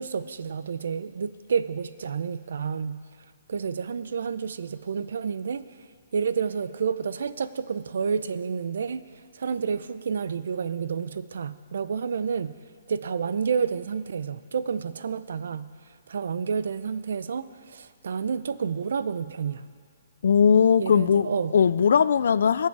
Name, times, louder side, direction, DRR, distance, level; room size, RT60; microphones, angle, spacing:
voice 1, 0.0-3.0 3.5-5.6 6.1-12.5 12.9-15.7 16.1-19.7 20.8-21.5, right 6 dB, 70° right, 14 dB, 0.5 m, -30 dB
voice 2, 20.2-22.7, left 7 dB, 65° left, 17 dB, 0.3 m, -19 dB
21.0 x 7.5 x 4.7 m, 2.1 s
hypercardioid pair, 170°, 0 cm